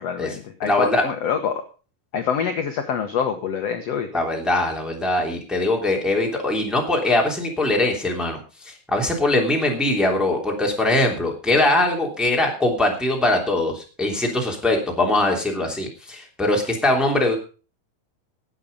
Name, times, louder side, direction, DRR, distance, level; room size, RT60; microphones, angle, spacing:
voice 1, 0.0-1.6 2.1-4.1, left 7 dB, 60° left, 6 dB, 1.8 m, -25 dB
voice 2, 0.6-1.0 4.1-8.4 8.6-17.4, left 2 dB, ahead, 0 dB, 2.5 m, -21 dB
17.5 x 7.9 x 5.4 m, 0.36 s
omnidirectional pair, 4.4 m